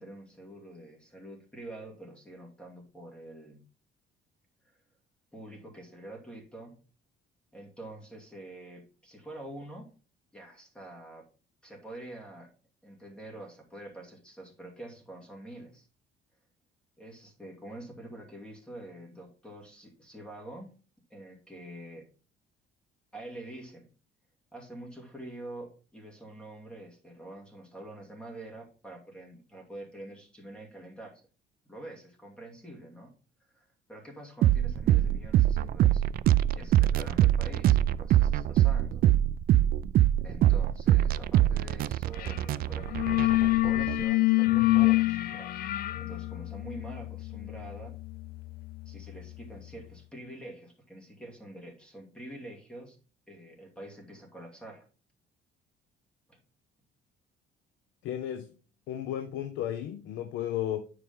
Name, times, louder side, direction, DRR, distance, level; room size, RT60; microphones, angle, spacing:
voice 1, 0.0-3.6 5.3-6.8 7.5-9.9 10.3-11.3 11.6-12.5 12.8-15.9 17.0-20.7 21.1-22.1 23.1-23.9 24.5-31.2 31.7-33.1 33.5-36.1 36.5-39.0 40.2-45.5 46.0-48.0 48.9-53.0 53.3-54.9 56.3-56.4, right 1 dB, 5° left, 2.4 m, -46 dB
sound 1, 34.4-44.0, right 12 dB, 50° right, 0.4 m, -24 dB
sound 2, 42.2-42.4 42.7-49.3, left 20 dB, 50° left, 0.4 m, -27 dB
voice 2, 58.0-58.5 58.9-60.9, left 11 dB, 90° left, 0.7 m, -33 dB
9.7 x 5.0 x 3.7 m
cardioid pair, 150°, 19 cm